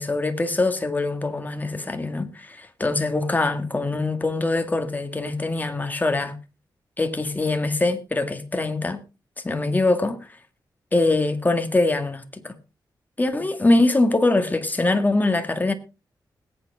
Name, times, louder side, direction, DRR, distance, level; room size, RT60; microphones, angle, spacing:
voice 1, 0.0-6.4 7.0-9.0 9.4-10.2 10.9-12.5 13.2-15.7, left 2 dB, 20° left, 1.8 m, -23 dB
20.5 x 8.9 x 3.6 m
wide cardioid pair, 100°, 8 cm